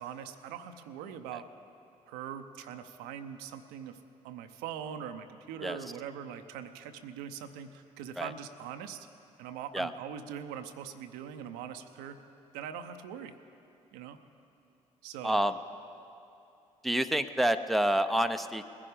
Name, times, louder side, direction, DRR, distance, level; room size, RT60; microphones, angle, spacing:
voice 1, 0.0-1.5 2.1-4.0 4.2-9.1 9.4-12.2 12.5-13.3 13.9-14.2 15.0-15.4, right 8 dB, 70° right, 8 dB, 0.6 m, -42 dB
voice 2, 15.2-15.6 16.8-18.7, right 1 dB, ahead, 8 dB, 0.6 m, -28 dB
20.0 x 11.0 x 5.0 m, 2.7 s
figure-of-eight pair, 45°, 17 cm